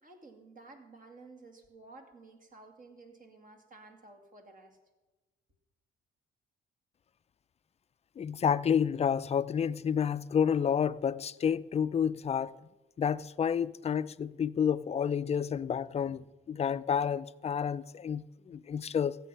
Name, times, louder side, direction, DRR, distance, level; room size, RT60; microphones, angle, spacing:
voice 1, 0.0-4.8 15.6-16.2, right 3 dB, 40° right, 2.4 m, -54 dB
voice 2, 8.2-12.6 13.0-19.2, left 7 dB, 30° left, 0.4 m, -30 dB
14.5 x 8.1 x 5.6 m
cardioid pair, 90°, 20 cm